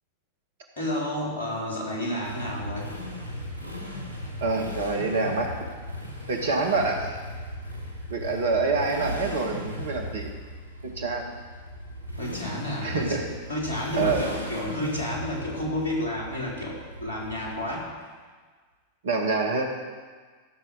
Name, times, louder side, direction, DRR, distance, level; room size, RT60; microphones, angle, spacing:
voice 1, 0.8-2.9 12.2-13.2 13.5-17.9, left 1 dB, 70° left, -4 dB, 4.2 m, -31 dB
Motorcycle, 2.2-18.0, left 1 dB, 85° left, 4.6 m, -37 dB
voice 2, 4.4-5.6 6.3-7.2 8.1-10.3 10.8-11.3 12.8-13.2 14.0-14.3 19.0-19.6, right 3 dB, 60° right, 3 dB, 1.9 m, -26 dB
15.5 x 6.6 x 6.7 m, 1.5 s
figure-of-eight pair, 90°, 0 cm